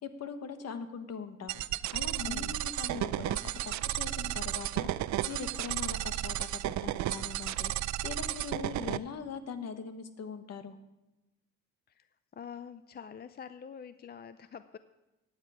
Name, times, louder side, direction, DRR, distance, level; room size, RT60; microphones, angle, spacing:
voice 1, 0.0-10.8, left 6 dB, 55° left, 9 dB, 1.3 m, -42 dB
sound 1, 1.5-9.0, right 14 dB, 70° right, 0.5 m, -33 dB
voice 2, 2.2-2.6 11.9-14.8, left 7 dB, 35° left, 12 dB, 0.5 m, -46 dB
15.0 x 9.6 x 4.9 m, 1.0 s
cardioid pair, 90°, 30 cm